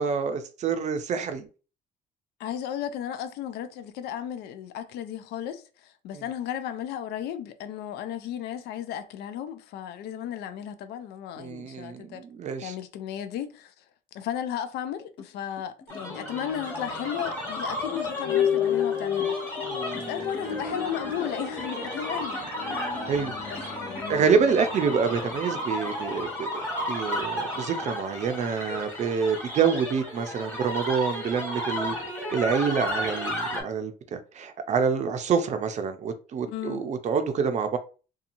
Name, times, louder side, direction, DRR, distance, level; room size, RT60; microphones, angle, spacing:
voice 1, 0.0-1.5 11.4-12.7 19.6-20.3 23.1-23.3 24.1-26.6 26.9-32.0 32.3-37.8, right 6 dB, 45° right, 0.5 m, -27 dB
voice 2, 2.4-12.2 12.6-13.8 14.1-19.4 19.9-23.0 23.5-24.5 36.5-36.8, left 10 dB, 75° left, 0.4 m, -35 dB
sound 1, 15.2-15.3 15.6-24.8, left 3 dB, 30° left, 0.6 m, -47 dB
sound 2, 15.9-33.6, left 1 dB, 15° left, 1.3 m, -33 dB
sound 3, 16.0-26.1, left 8 dB, 45° left, 1.1 m, -33 dB
2.8 x 2.3 x 2.6 m
cardioid pair, 110°, 17 cm